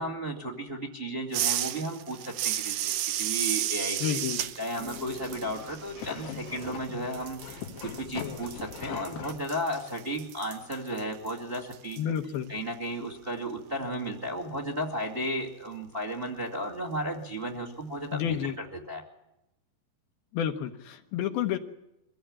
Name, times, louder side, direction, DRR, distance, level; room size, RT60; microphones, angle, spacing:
voice 1, 0.0-4.2 4.6-12.0 12.5-19.0, right 1 dB, 20° right, 2 dB, 1.7 m, -34 dB
sound 1, 1.3-6.9 7.1-12.0, right 13 dB, 75° right, 2.5 m, -33 dB
voice 2, 4.0-4.4 12.0-12.5 18.1-18.6 20.3-21.6, left 9 dB, 75° left, 7 dB, 2.7 m, -30 dB
sound 2, 4.8-9.4, left 8 dB, 90° left, 4.0 m, -40 dB
23.5 x 16.0 x 8.7 m, 0.91 s
omnidirectional pair, 4.7 m